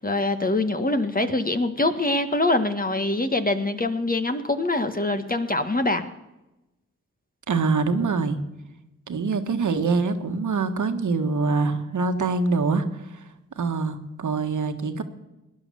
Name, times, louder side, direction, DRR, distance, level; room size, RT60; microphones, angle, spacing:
voice 1, 0.0-6.0, left 2 dB, 25° left, 8 dB, 1.6 m, -24 dB
voice 2, 7.5-8.4 9.1-13.2 13.6-15.0, right 4 dB, 70° right, 7 dB, 1.6 m, -24 dB
18.0 x 10.5 x 6.9 m, 0.98 s
supercardioid pair, 40°, 31 cm